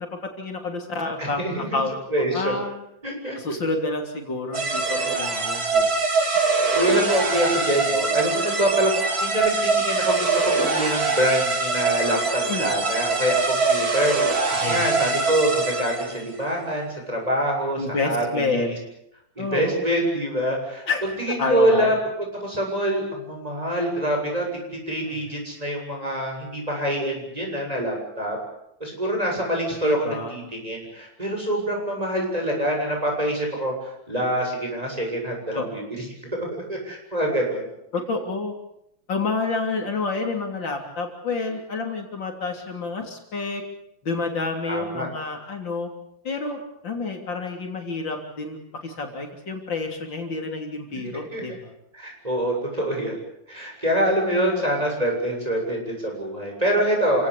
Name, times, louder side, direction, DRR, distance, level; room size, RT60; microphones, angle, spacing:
voice 1, 0.0-2.0 2.3-2.8 3.4-5.9 12.5-12.7 14.6-15.0 17.8-18.8 19.4-19.8 20.9-21.0 21.4-21.9 25.1-25.2 29.8-30.3 35.5-35.8 37.9-38.5 39.1-43.6 44.0-45.9 46.2-48.6 48.8-51.7 54.3-54.6, left 3 dB, 75° left, 3 dB, 4.0 m, -29 dB
voice 2, 1.2-1.8 2.1-2.5 3.0-3.4 6.7-8.9 9.2-18.7 19.4-20.9 21.2-24.5 24.9-28.4 28.8-36.0 36.3-37.7 44.7-45.1 51.3-51.4 51.9-53.2 53.5-57.3, right 1 dB, 20° right, 0 dB, 7.6 m, -25 dB
sound 1, 4.5-16.2, right 4 dB, 50° right, 3.2 m, -23 dB
28.5 x 17.5 x 8.6 m, 0.79 s
omnidirectional pair, 2.0 m